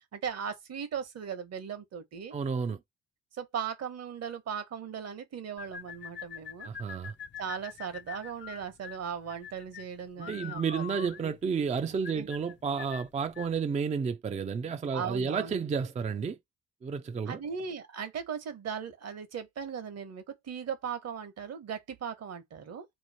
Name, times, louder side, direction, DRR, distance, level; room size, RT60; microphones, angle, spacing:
voice 1, 0.0-2.3 3.3-6.7 7.4-11.4 12.1-12.3 14.9-15.6 17.3-22.9, right 7 dB, 55° right, 1.1 m, -38 dB
voice 2, 2.3-2.8 6.6-7.1 10.2-16.4 16.8-17.4, right 6 dB, 25° right, 0.4 m, -31 dB
sound 1, 5.6-13.6, left 8 dB, 40° left, 0.4 m, -44 dB
3.0 x 2.4 x 4.1 m
cardioid pair, 90°, 30 cm